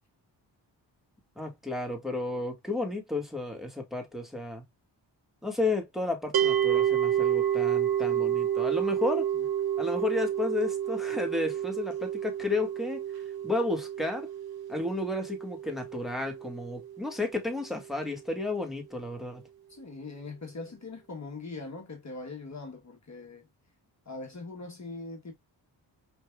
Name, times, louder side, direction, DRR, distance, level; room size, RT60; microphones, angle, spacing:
voice 1, 1.4-4.6 5.4-9.3 9.8-13.0 13.4-14.3 14.7-19.4, left 2 dB, ahead, 1.9 m, -32 dB
sound 1, 6.3-17.5, right 10 dB, 55° right, 0.9 m, -30 dB
voice 2, 19.7-23.5 24.0-25.3, left 3 dB, 40° left, 1.3 m, -41 dB
5.1 x 3.5 x 2.4 m
cardioid pair, 60°, 45 cm